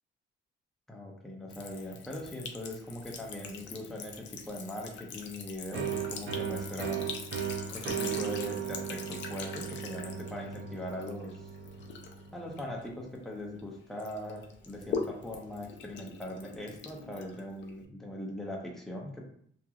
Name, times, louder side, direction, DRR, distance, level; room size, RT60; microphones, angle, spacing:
voice 1, 0.9-7.1 7.7-11.5 12.3-19.2, left 1 dB, ahead, -1 dB, 0.4 m, -40 dB
Sink (filling or washing) / Trickle dribble, 1.5-13.6 14.0-17.9, left 5 dB, 65° left, 0.4 m, -43 dB
sound 1, 5.7-13.2, right 8 dB, 60° right, 0.5 m, -37 dB
2.8 x 2.4 x 2.3 m, 0.62 s
cardioid pair, 170°, 21 cm